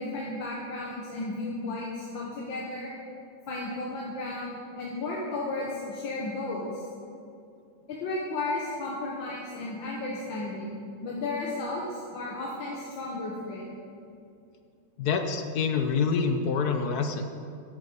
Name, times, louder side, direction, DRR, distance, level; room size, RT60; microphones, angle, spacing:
voice 1, 0.0-2.9 3.5-6.8 8.0-13.6, left 2 dB, 85° left, -4 dB, 2.0 m, -34 dB
voice 2, 15.0-17.2, left 5 dB, 60° left, 6 dB, 1.2 m, -26 dB
10.0 x 8.8 x 6.8 m, 2.5 s
omnidirectional pair, 2.0 m